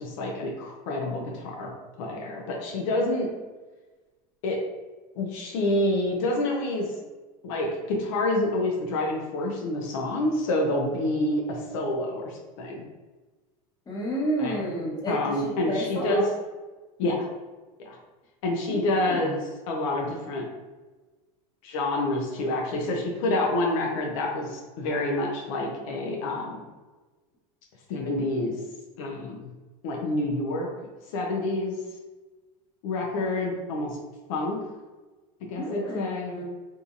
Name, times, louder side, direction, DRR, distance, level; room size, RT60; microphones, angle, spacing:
voice 1, 0.0-1.7 2.0-3.3 4.4-4.6 5.2-6.9 7.4-12.8 14.4-14.6 15.1-16.3 17.0-17.3 17.8-18.0 18.4-20.5 21.6-26.6 27.9-28.5 29.0-29.5 29.8-30.7 31.1-31.8 32.8-34.0 34.3-34.7 35.4-36.3, left 1 dB, 70° left, 0 dB, 0.5 m, -28 dB
voice 2, 13.9-16.3 18.7-19.3 35.6-36.4, right 1 dB, 25° left, -5 dB, 1.1 m, -31 dB
2.7 x 2.6 x 2.5 m, 1.2 s
supercardioid pair, 100°, 17 cm